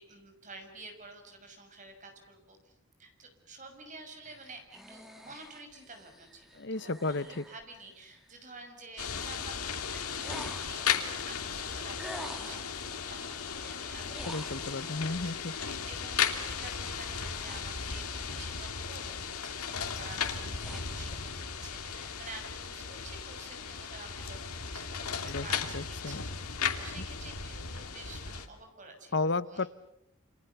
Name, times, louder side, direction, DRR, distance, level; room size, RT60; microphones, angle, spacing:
voice 1, 0.0-4.6 4.9-14.7 15.2-26.3 26.7-29.7, right 3 dB, 35° right, 5 dB, 6.3 m, -50 dB
sound 1, 4.2-8.4 10.2-11.0 12.0-12.8 14.0-15.1 16.7-18.8 19.2-19.6 20.1-21.2, equal, ahead, 2.4 m, -48 dB
voice 2, 6.6-7.4 14.3-15.5 25.3-25.5 25.7-26.2 29.1-29.7, left 3 dB, 55° left, 15 dB, 1.0 m, -33 dB
sound 2, 9.0-28.5, left 6 dB, 90° left, 2.9 m, -36 dB
29.5 x 27.5 x 6.9 m, 0.81 s
head